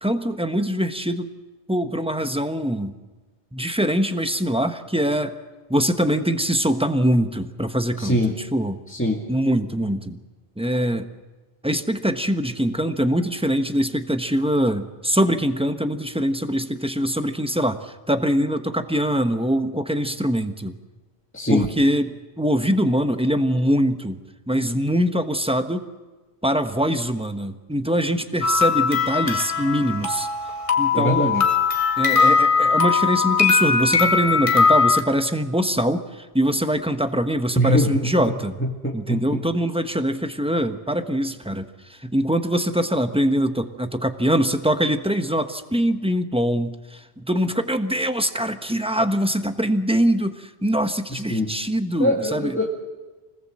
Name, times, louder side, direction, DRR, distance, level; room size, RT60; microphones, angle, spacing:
voice 1, 0.0-1.3 1.7-2.9 3.5-5.3 5.7-8.2 8.5-8.8 9.3-10.2 10.6-11.1 11.6-17.8 18.1-20.7 21.5-24.2 24.5-25.8 26.4-30.3 30.8-31.5 32.0-38.6 38.9-52.6, equal, 5° right, 8 dB, 1.1 m, -23 dB
voice 2, 8.0-8.3 8.9-9.2 21.3-21.7 30.9-31.4 37.5-38.1 38.6-39.4 51.1-51.6 52.0-52.7, equal, 10° left, -2 dB, 2.0 m, -23 dB
sound 1, 28.4-35.0, left 5 dB, 30° left, 2.1 m, -20 dB
25.5 x 19.5 x 7.6 m, 1.2 s
omnidirectional pair, 1.1 m